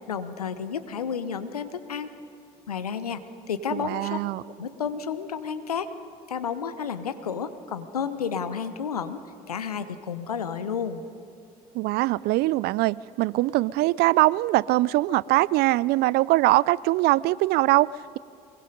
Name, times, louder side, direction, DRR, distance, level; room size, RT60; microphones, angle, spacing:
voice 1, 0.1-2.1 2.7-3.2 3.5-4.2 4.6-5.9 6.3-9.2 9.5-11.0, left 7 dB, 85° left, 0.9 m, -31 dB
voice 2, 3.7-4.4 11.7-18.2, right 18 dB, 60° right, 0.4 m, -22 dB
23.0 x 21.5 x 5.4 m
figure-of-eight pair, 50°, 19 cm